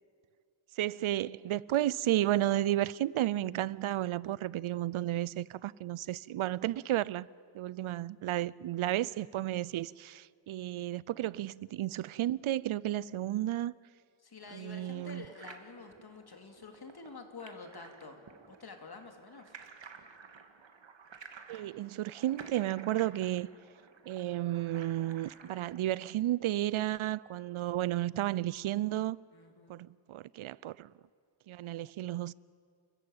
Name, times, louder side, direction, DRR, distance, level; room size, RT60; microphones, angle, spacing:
voice 1, 0.8-7.3 7.5-13.7 14.5-15.2 21.5-23.5 24.1-29.2 29.7-30.9 31.5-32.3, right 14 dB, 85° right, 0.6 m, -32 dB
voice 2, 14.2-18.2 18.5-19.5 29.3-29.7, left 4 dB, 50° left, 2.7 m, -48 dB
sound 1, 14.4-25.8, right 5 dB, 65° right, 1.9 m, -53 dB
30.0 x 14.5 x 8.9 m
wide cardioid pair, 95°, 48 cm